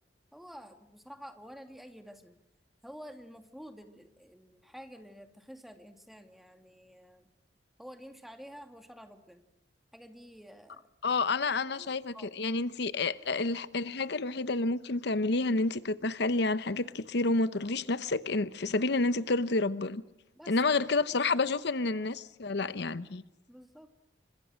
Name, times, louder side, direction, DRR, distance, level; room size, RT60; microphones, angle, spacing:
voice 1, 0.3-2.4 2.8-7.3 7.8-9.4 9.9-10.9 11.8-12.3 20.3-20.6 23.5-23.9, equal, ahead, 2.4 m, -50 dB
voice 2, 11.0-20.0 20.5-23.2, left 3 dB, 65° left, 0.9 m, -29 dB
29.5 x 26.0 x 6.4 m
head